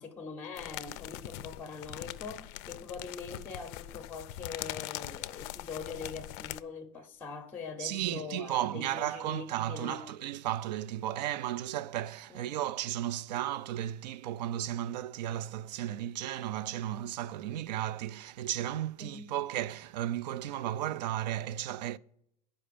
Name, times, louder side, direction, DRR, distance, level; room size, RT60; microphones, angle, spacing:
voice 1, 0.0-10.1 12.3-12.6 19.0-19.3, left 5 dB, 10° left, 0.7 m, -43 dB
sound 1, 0.5-6.6, left 15 dB, 45° left, 0.4 m, -42 dB
voice 2, 7.8-22.0, right 12 dB, 85° right, 0.5 m, -34 dB
10.0 x 5.2 x 6.7 m
supercardioid pair, 155°, 21 cm